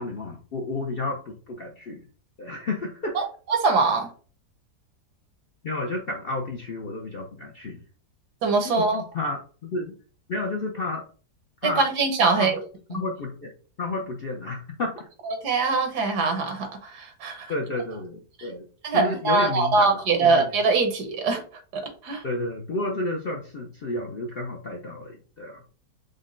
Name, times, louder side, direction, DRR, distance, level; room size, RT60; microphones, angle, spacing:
voice 1, 0.0-2.1 2.4-3.2 5.6-7.8 8.6-10.0 10.3-11.0 11.6-11.9 12.4-12.5 12.9-13.5 13.8-15.1 17.5-18.6 18.9-20.6 22.2-25.7, left 2 dB, 55° left, 0 dB, 0.6 m, -31 dB
voice 2, 3.5-4.1 8.4-9.0 11.6-12.6 15.3-17.5 18.8-21.4 21.7-22.2, right 4 dB, 75° right, 5 dB, 1.6 m, -23 dB
5.1 x 2.2 x 3.7 m, 0.39 s
omnidirectional pair, 1.8 m